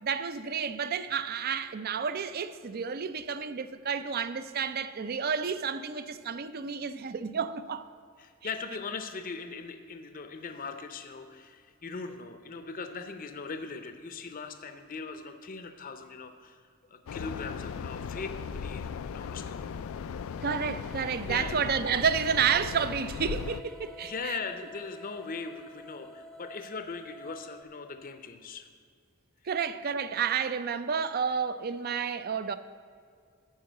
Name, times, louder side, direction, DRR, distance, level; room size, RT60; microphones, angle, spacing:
voice 1, 0.0-7.9 20.4-24.4 29.5-32.6, right 6 dB, 45° right, 0.5 m, -30 dB
voice 2, 8.2-16.6 16.9-19.8 20.1-20.2 21.2-21.6 24.0-28.7, left 4 dB, 45° left, 0.6 m, -40 dB
sound 1, 17.1-23.6, left 6 dB, 85° left, 0.4 m, -37 dB
sound 2, 20.4-27.6, left 1 dB, ahead, 0.6 m, -51 dB
11.5 x 4.8 x 7.8 m
head